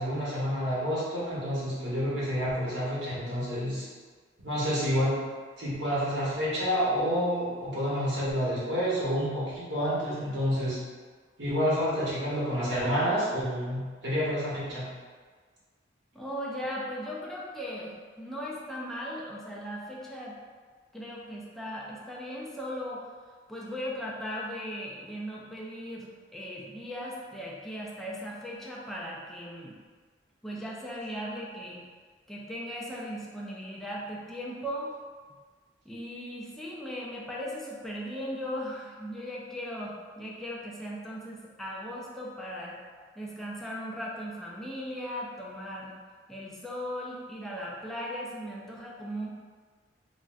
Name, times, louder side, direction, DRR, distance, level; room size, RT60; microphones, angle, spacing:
voice 1, 0.0-3.9 4.4-5.2 5.6-10.8 11.4-14.9, equal, 80° right, -9 dB, 1.1 m, -29 dB
voice 2, 16.1-20.3 20.9-23.1 23.5-29.7 30.4-31.8 32.3-34.9 35.8-42.8 43.2-46.0 46.3-49.3, equal, ahead, -5 dB, 0.4 m, -38 dB
3.8 x 2.2 x 2.4 m, 1.5 s
head